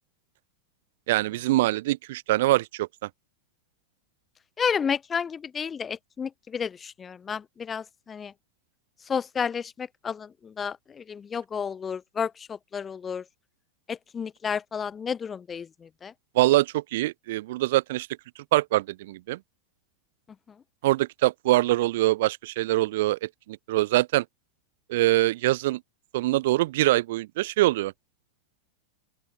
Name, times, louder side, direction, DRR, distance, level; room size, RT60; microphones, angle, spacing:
voice 1, 1.1-2.9 16.3-18.1 18.5-19.4 20.8-24.2 24.9-25.8 26.1-27.9, right 17 dB, 55° right, 0.8 m, -24 dB
voice 2, 4.6-8.3 9.1-13.2 13.9-16.1, left 6 dB, 20° left, 1.0 m, -31 dB
open air
figure-of-eight pair, 90°, 0 cm